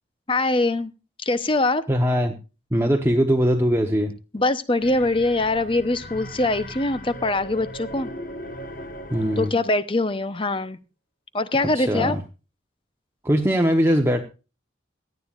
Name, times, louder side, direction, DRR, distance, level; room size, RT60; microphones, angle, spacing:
voice 1, 0.3-0.9 1.2-1.8 4.3-8.1 9.4-10.8 11.3-12.1, left 2 dB, 25° left, 13 dB, 0.8 m, -23 dB
voice 2, 1.9-2.3 2.7-4.1 9.1-9.5 11.6-12.2 13.2-14.2, equal, 15° right, 2 dB, 1.0 m, -21 dB
sound 1, 4.8-9.7, equal, 45° left, 1.5 m, -38 dB
17.0 x 12.0 x 2.5 m, 0.31 s
head